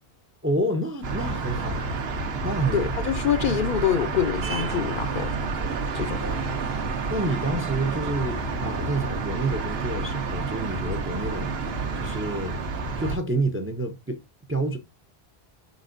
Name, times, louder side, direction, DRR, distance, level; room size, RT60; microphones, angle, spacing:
voice 1, 0.4-1.9 2.4-2.8 6.2-6.7 7.1-12.6 13.0-14.2 14.5-14.8, right 2 dB, 20° right, 0.4 m, -29 dB
sound 1, 1.0-13.2, right 4 dB, 75° right, 1.0 m, -29 dB
voice 2, 2.7-5.4 5.9-6.2, left 9 dB, 60° left, 0.6 m, -25 dB
5.1 x 4.0 x 2.5 m
omnidirectional pair, 1.0 m